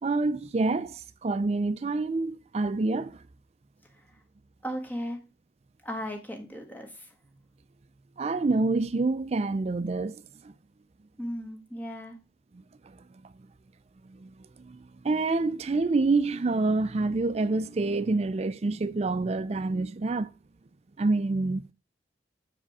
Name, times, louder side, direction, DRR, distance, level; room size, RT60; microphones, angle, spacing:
voice 1, 0.0-3.2 8.2-10.5 12.8-13.0 13.2-13.3 14.0-20.3 21.0-21.7, right 3 dB, 35° right, 0.4 m, -27 dB
voice 2, 4.6-5.2 5.8-7.1 11.2-12.2, equal, 10° left, 1.5 m, -36 dB
6.9 x 5.0 x 4.8 m
head